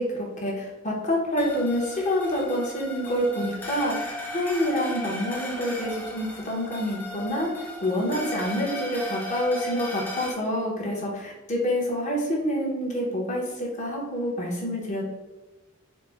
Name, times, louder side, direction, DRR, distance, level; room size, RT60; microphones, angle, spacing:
voice 1, 0.0-15.1, equal, 35° left, -3 dB, 0.8 m, -27 dB
sound 1, 1.4-10.3, left 1 dB, 10° left, 0.4 m, -36 dB
4.2 x 2.0 x 3.3 m, 1.2 s
head